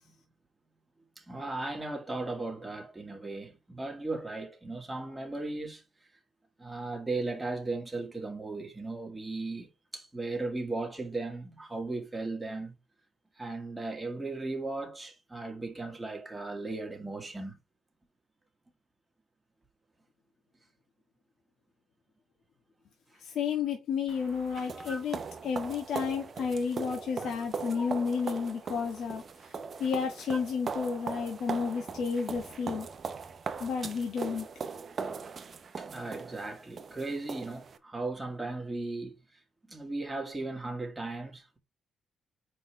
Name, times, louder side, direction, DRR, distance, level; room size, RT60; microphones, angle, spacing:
voice 1, 1.2-5.8 6.6-9.7 9.9-12.8 13.4-17.6 24.7-25.0 27.2-27.3 27.8-27.9 35.8-39.2 39.7-41.6, right 2 dB, 15° right, 2.0 m, -36 dB
voice 2, 23.2-29.2 29.8-32.9 33.6-34.5, left 6 dB, 65° left, 1.4 m, -31 dB
sound 1, 24.1-37.8, right 5 dB, 45° right, 0.8 m, -40 dB
5.2 x 4.4 x 4.5 m
cardioid pair, 90°, 0 cm